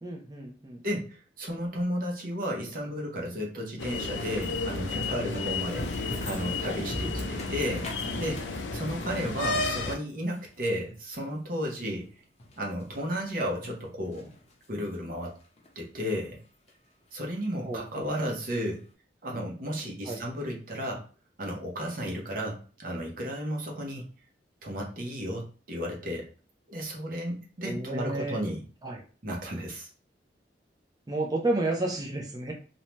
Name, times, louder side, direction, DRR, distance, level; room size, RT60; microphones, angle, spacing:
voice 1, 0.0-0.8 9.1-9.2 17.6-17.8 20.1-20.2 27.6-28.4 28.8-29.0 31.1-32.5, right 2 dB, 20° right, 1 dB, 0.5 m, -31 dB
voice 2, 0.8-7.9 8.2-8.4 8.7-12.1 12.6-14.3 14.7-15.4 15.8-16.4 17.1-18.9 19.2-21.0 21.4-24.0 24.6-26.3 26.7-28.6 29.2-29.9, equal, 50° right, 0 dB, 0.8 m, -33 dB
sound 1, 3.8-10.0, left 3 dB, 85° left, 0.5 m, -32 dB
sound 2, 4.4-13.3 13.6-15.1 15.4-15.7 16.2-16.3 16.7-16.8 17.0-17.1 18.1-18.2 18.5-18.6, left 1 dB, 35° left, 0.5 m, -42 dB
2.6 x 2.1 x 3.1 m, 0.38 s
head